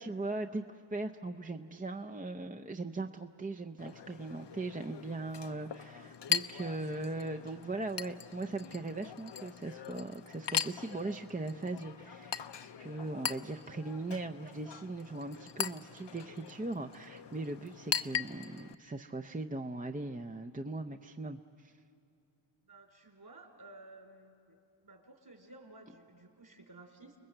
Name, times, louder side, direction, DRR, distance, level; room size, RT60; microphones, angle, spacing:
voice 1, 0.0-21.7, right 2 dB, 15° right, 4 dB, 0.6 m, -39 dB
Chink clink, 3.8-18.7, left 8 dB, 60° left, 0.7 m, -40 dB
voice 2, 22.6-24.6 24.8-27.2, right 2 dB, 50° right, 3 dB, 4.1 m, -55 dB
29.0 x 20.5 x 7.9 m, 2.6 s
cardioid pair, 55°, 48 cm